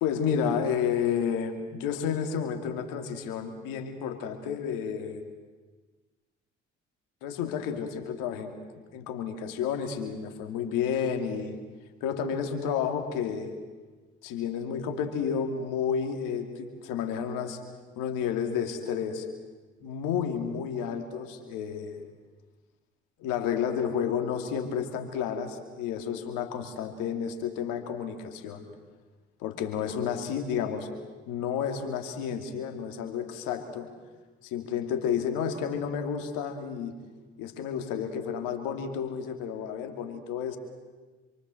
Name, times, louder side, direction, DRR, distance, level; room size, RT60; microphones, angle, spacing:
voice 1, 0.0-5.2 7.2-8.5 8.9-11.6 12.0-13.6 14.2-17.6 18.0-19.3 19.8-22.1 23.2-28.7 29.4-30.9 31.3-33.9 34.4-36.9 37.4-40.6, left 7 dB, 80° left, 6 dB, 2.7 m, -31 dB
27.5 x 23.5 x 7.8 m, 1.3 s
hypercardioid pair, 45°, 32 cm